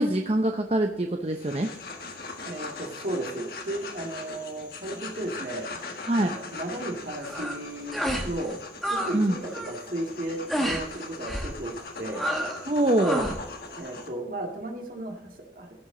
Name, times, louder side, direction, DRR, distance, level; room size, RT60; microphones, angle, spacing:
voice 1, 0.0-1.7 6.1-6.4 9.1-9.4 12.7-13.3, right 1 dB, 35° right, 4 dB, 0.7 m, -24 dB
sound 1, 1.3-14.1, left 3 dB, 55° left, 1.7 m, -40 dB
voice 2, 2.5-5.7 6.2-8.6 8.9-12.3 13.8-15.9, right 1 dB, 50° right, 1 dB, 2.2 m, -35 dB
sound 2, 7.2-7.6 7.9-8.3 8.6-9.2 9.4-9.8 10.5-10.8 11.3-11.5 12.1-12.6 13.0-13.4, right 1 dB, ahead, 1.4 m, -29 dB
16.0 x 7.3 x 3.9 m, 0.95 s
head